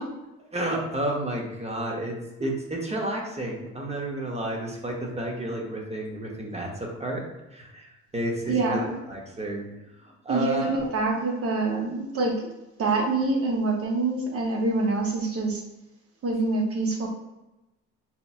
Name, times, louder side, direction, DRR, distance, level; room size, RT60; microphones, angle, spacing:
voice 1, 0.5-7.2 7.5-8.8 9.1-9.7 10.0-10.8, right 1 dB, 20° right, 0 dB, 0.8 m, -31 dB
voice 2, 8.5-8.9 10.3-12.3 12.8-15.6 16.2-17.1, right 3 dB, 50° right, 1 dB, 0.8 m, -25 dB
4.3 x 2.5 x 2.4 m, 1.0 s
cardioid pair, 90°, 30 cm